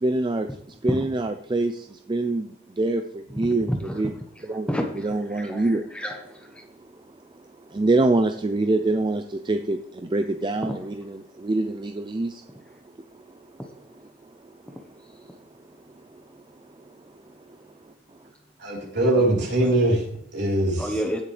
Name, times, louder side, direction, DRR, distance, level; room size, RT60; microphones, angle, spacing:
voice 1, 0.0-4.1 4.5-5.8 6.6-7.0 7.3-12.8 13.1-13.2 14.2-14.5 15.2-15.4 16.0-17.9, right 2 dB, 25° right, 7 dB, 0.4 m, -26 dB
voice 2, 3.4-4.0 4.7-6.6 10.6-10.7 19.1-19.2 19.6-19.7 20.8-21.2, equal, 5° left, 2 dB, 1.0 m, -30 dB
voice 3, 18.6-20.9, right 1 dB, 60° right, -3 dB, 3.8 m, -22 dB
16.5 x 6.8 x 3.3 m, 0.66 s
head